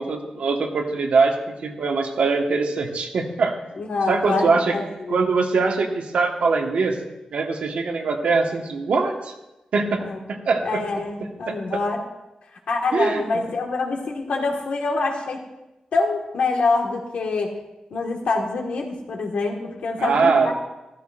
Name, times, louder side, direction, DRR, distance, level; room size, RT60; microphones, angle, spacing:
voice 1, 0.0-3.6 4.1-4.7 5.1-7.0 7.3-9.3 9.7-10.0 10.4-10.8 11.5-11.6 12.9-13.5 20.0-20.5, right 4 dB, 75° right, 2 dB, 1.4 m, -22 dB
voice 2, 3.8-5.2 10.0-10.2 10.6-12.0 12.7-15.4 15.9-17.5 17.9-20.5, left 3 dB, 75° left, 1 dB, 1.6 m, -25 dB
14.0 x 13.5 x 2.5 m, 0.98 s
wide cardioid pair, 170°, 2 cm